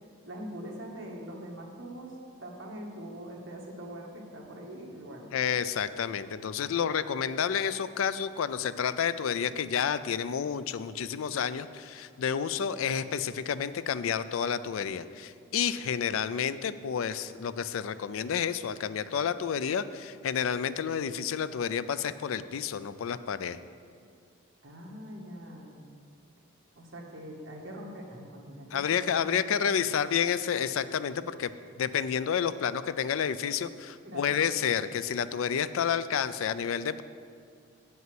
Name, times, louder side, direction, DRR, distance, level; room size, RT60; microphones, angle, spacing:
voice 1, 0.2-5.3 24.6-25.8 26.7-29.5 29.8-29.9 34.1-34.5, equal, 65° right, -2 dB, 1.6 m, -43 dB
voice 2, 5.3-23.6 28.7-31.5 31.8-37.0, left 7 dB, 80° left, 14 dB, 0.4 m, -30 dB
7.8 x 5.5 x 7.7 m, 2.3 s
head